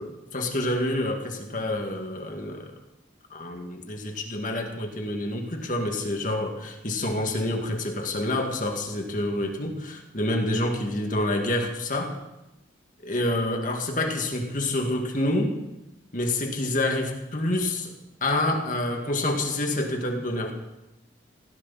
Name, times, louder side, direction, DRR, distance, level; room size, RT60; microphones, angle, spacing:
voice 1, 0.0-2.7 3.3-12.2 13.0-15.5 16.1-17.9 18.2-20.5, left 1 dB, 40° left, 3 dB, 2.2 m, -27 dB
17.5 x 16.5 x 4.3 m, 0.91 s
head